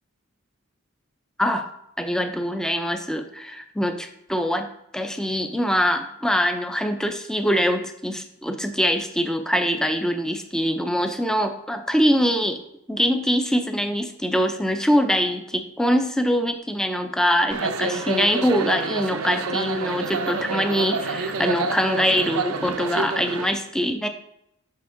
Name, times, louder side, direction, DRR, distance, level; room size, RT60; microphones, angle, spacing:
voice 1, 2.0-12.6 12.9-24.1, equal, 5° left, 7 dB, 0.4 m, -23 dB
sound 1, 17.5-23.5, right 4 dB, 80° right, 0.6 m, -28 dB
9.3 x 5.7 x 2.6 m, 0.78 s
head